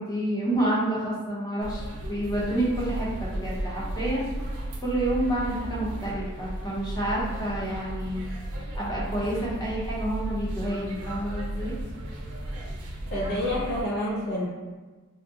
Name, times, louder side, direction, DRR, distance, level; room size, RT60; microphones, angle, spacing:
voice 1, 0.0-4.3 4.8-8.3 8.7-11.7, right 1 dB, 15° left, -6 dB, 0.7 m, -29 dB
sound 1, 1.6-13.8, right 1 dB, 80° right, 0.6 m, -34 dB
voice 2, 13.1-14.5, left 1 dB, 45° left, -5 dB, 0.4 m, -28 dB
3.5 x 2.1 x 2.7 m, 1.3 s
head